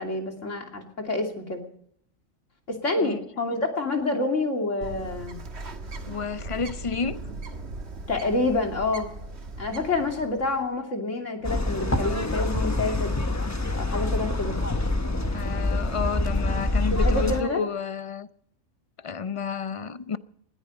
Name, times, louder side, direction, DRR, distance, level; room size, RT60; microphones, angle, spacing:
voice 1, 0.0-1.6 2.7-5.4 8.1-9.1 9.6-13.1 13.8-14.6 16.9-17.6, left 2 dB, 75° left, 3.2 m, -28 dB
Bird, 4.8-10.7, right 2 dB, 60° right, 1.8 m, -39 dB
voice 2, 6.1-7.2 15.3-18.3 19.0-20.2, left 5 dB, 35° left, 0.5 m, -30 dB
sound 1, 11.4-17.4, left 2 dB, 15° left, 1.0 m, -26 dB
20.5 x 13.5 x 5.2 m
omnidirectional pair, 1.3 m